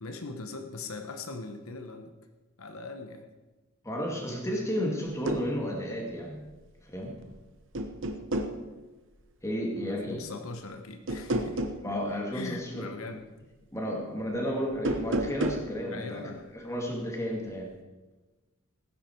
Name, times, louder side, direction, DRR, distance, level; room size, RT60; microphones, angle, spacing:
voice 1, 0.0-2.1 2.6-3.3 9.7-11.6 12.3-13.2 15.9-16.5, left 3 dB, 80° left, 6 dB, 1.1 m, -40 dB
voice 2, 3.8-6.4 6.8-7.2 9.4-10.3 11.8-12.9 13.7-16.2 16.5-17.7, equal, 15° left, 0 dB, 2.4 m, -32 dB
sound 1, 5.0-5.5 7.0-7.4 7.7-8.6 11.1-11.8 14.7-15.7, right 1 dB, 60° right, 1.1 m, -31 dB
17.0 x 10.0 x 4.7 m, 1.2 s
head